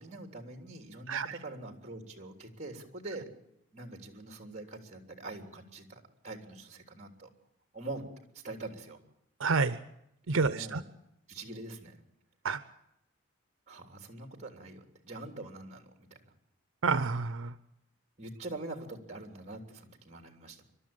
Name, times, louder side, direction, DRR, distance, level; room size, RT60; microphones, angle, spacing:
voice 1, 0.0-3.4 3.7-7.3 7.7-8.0 8.3-9.0 10.3-10.8 11.3-12.0 13.7-16.3 18.2-20.6, right 2 dB, 35° right, 6 dB, 3.3 m, -44 dB
voice 2, 1.1-1.4 9.4-9.8 10.3-10.8 12.4-12.6 16.8-17.5, right 4 dB, 80° right, 14 dB, 0.7 m, -29 dB
27.5 x 13.0 x 8.8 m, 0.78 s
head